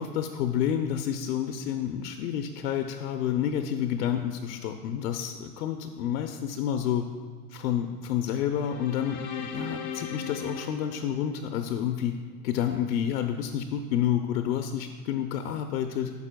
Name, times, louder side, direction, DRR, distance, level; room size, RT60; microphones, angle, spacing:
voice 1, 0.0-7.1 7.5-12.1 12.4-16.1, left 9 dB, 85° left, 6 dB, 0.7 m, -29 dB
sound 1, 8.4-11.8, left 6 dB, 30° left, 0.4 m, -38 dB
13.0 x 5.5 x 2.2 m, 1.5 s
supercardioid pair, 165°, 47 cm